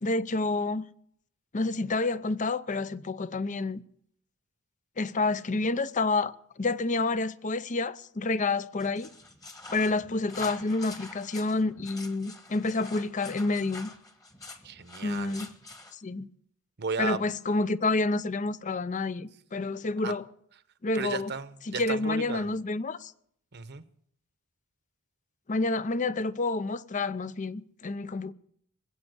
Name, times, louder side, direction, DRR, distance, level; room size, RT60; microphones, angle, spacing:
voice 1, 0.0-0.8 1.5-3.8 5.0-9.1 9.7-13.9 15.0-15.5 16.0-16.3 17.0-20.2 20.8-21.3 21.7-23.1 25.5-28.3, left 3 dB, 35° left, 0.6 m, -29 dB
sound 1, 8.8-15.9, left 2 dB, 15° left, 1.3 m, -46 dB
voice 2, 14.6-15.4 16.8-17.2 20.0-20.1 20.9-22.5 23.5-23.8, right 5 dB, 50° right, 0.9 m, -34 dB
20.5 x 8.4 x 8.0 m
head